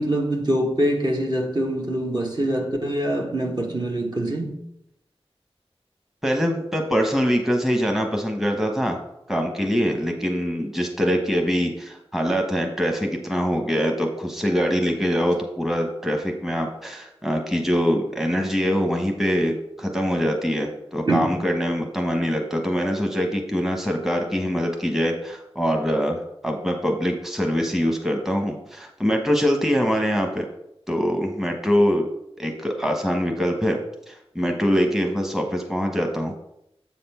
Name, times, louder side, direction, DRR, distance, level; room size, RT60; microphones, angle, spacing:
voice 1, 0.0-4.6 21.1-21.3, right 1 dB, 45° right, 1.4 m, -24 dB
voice 2, 6.2-9.0 9.3-30.5 30.9-32.1 32.4-33.8 34.1-36.3, equal, 5° right, 1.1 m, -23 dB
7.4 x 4.2 x 5.6 m
wide cardioid pair, 50°, 11 cm